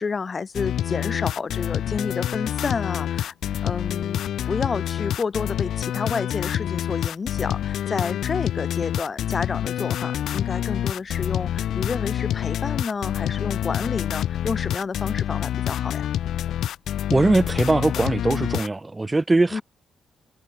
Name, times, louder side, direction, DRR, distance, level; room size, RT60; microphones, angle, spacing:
voice 1, 0.0-3.3 3.6-16.1 19.5-19.6, left 5 dB, 35° left, 1.1 m, -30 dB
sound 1, 0.5-18.7, left 11 dB, 70° left, 0.7 m, -27 dB
voice 2, 17.1-19.6, right 2 dB, 20° right, 0.3 m, -21 dB
cardioid pair, 90°, 0 cm